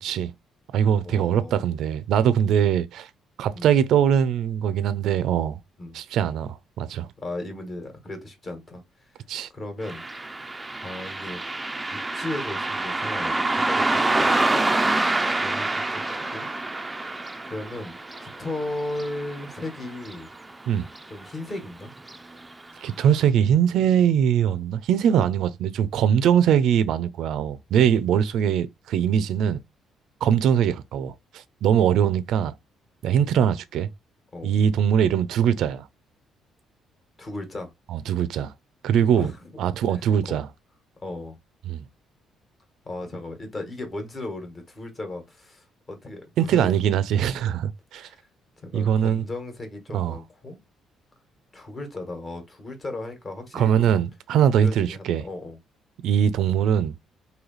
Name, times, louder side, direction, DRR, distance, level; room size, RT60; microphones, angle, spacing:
voice 1, 0.0-0.3 0.7-3.1 3.4-5.6 5.9-7.1 9.3-9.5 20.7-20.9 22.8-29.6 30.2-32.5 33.0-33.9 34.4-35.8 37.9-38.5 38.8-39.3 39.6-40.5 41.7-41.8 46.4-48.1 48.7-49.2 49.9-50.2 53.5-55.2 56.0-56.9, right 9 dB, 75° right, 0.4 m, -22 dB
voice 2, 1.0-1.6 3.5-3.7 5.8-6.0 7.2-9.1 9.5-10.1 10.8-11.4 11.9-15.0 15.4-16.5 17.5-20.3 21.1-21.9 30.3-30.4 33.2-33.4 34.3-34.6 37.2-37.7 39.2-39.6 39.9-40.4 41.0-41.4 42.8-47.0 47.9-48.3 48.6-50.6 51.5-53.9 54.6-55.6, left 2 dB, 30° left, 1.3 m, -36 dB
Car passing by, 9.8-20.7 20.9-21.0 22.0-22.2 22.6-22.7 23.2-23.3, right 2 dB, 10° right, 0.4 m, -27 dB
3.1 x 2.8 x 3.9 m
cardioid pair, 125°, 0 cm